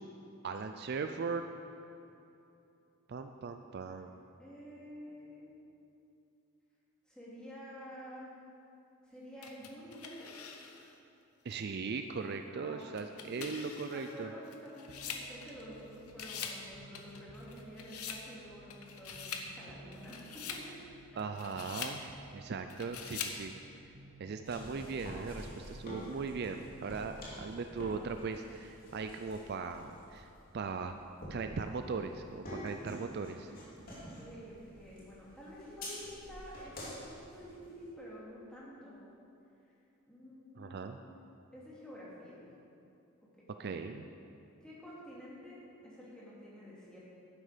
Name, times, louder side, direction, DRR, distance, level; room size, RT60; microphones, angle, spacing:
voice 1, 0.4-1.4 3.1-4.2 11.4-14.3 21.2-22.0 22.3-23.5 24.2-30.3 30.5-31.0 31.3-33.5 40.6-41.0 43.6-44.1, right 4 dB, 50° right, 7 dB, 0.4 m, -39 dB
voice 2, 4.4-5.5 7.1-8.3 9.0-10.3 12.5-20.8 21.1-21.2 33.9-39.0 40.1-41.0 41.5-42.4 44.6-47.0, equal, 5° left, -8 dB, 2.7 m, -50 dB
sound 1, 9.4-11.0 11.5-11.6 12.8-15.8 16.1-16.6 16.9-18.2 18.7-19.5 19.9-20.7 21.2-22.0 22.7-23.4, left 7 dB, 85° left, 1.0 m, -44 dB
sound 2, 14.9-26.9, right 3 dB, 65° right, 0.9 m, -56 dB
sound 3, 24.5-37.9, equal, 40° left, 2.7 m, -48 dB
12.0 x 9.5 x 5.1 m, 2.8 s
head